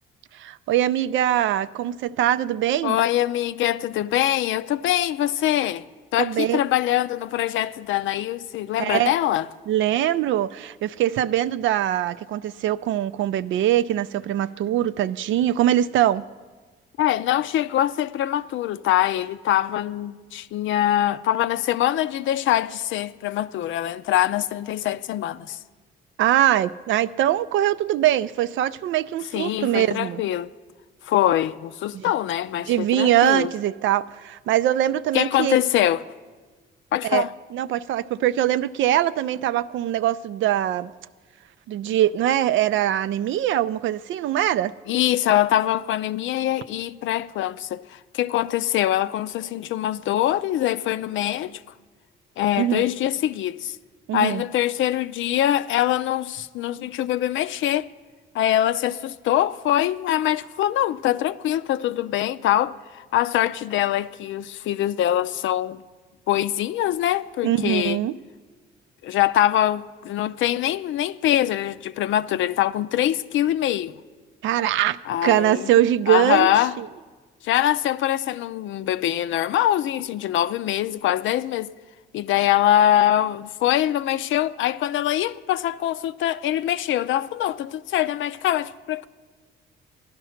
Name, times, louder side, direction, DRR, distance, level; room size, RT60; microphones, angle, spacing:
voice 1, 0.4-3.0 6.2-6.6 8.8-9.1 9.7-16.2 26.2-30.2 31.9-32.1 32.7-35.6 37.0-40.9 41.7-44.7 52.6-52.8 54.1-54.4 67.4-68.2 74.4-76.5 76.8-76.9, right 12 dB, 75° right, 0.4 m, -22 dB
voice 2, 2.8-5.8 6.1-9.5 17.0-25.6 29.3-30.5 31.0-33.5 35.1-36.0 36.9-37.3 44.9-51.6 52.4-53.8 54.1-57.9 58.3-65.8 66.3-68.0 69.0-74.0 75.1-75.7 76.1-76.8 77.4-81.7 82.1-89.1, left 12 dB, 75° left, 0.5 m, -23 dB
14.5 x 11.0 x 5.8 m
cardioid pair, 90°, 20 cm